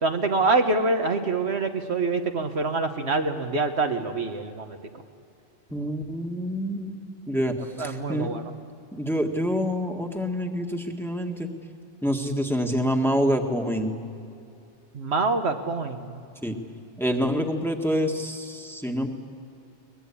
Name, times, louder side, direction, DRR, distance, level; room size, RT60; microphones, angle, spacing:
voice 1, 0.0-4.8 7.8-8.5 14.9-16.2, right 3 dB, 65° right, 5 dB, 1.6 m, -25 dB
voice 2, 5.7-7.0 7.3-8.3 8.9-11.5 12.0-14.0 16.4-16.5 17.0-19.1, equal, ahead, 3 dB, 1.7 m, -27 dB
23.0 x 20.5 x 8.6 m, 2.5 s
omnidirectional pair, 1.2 m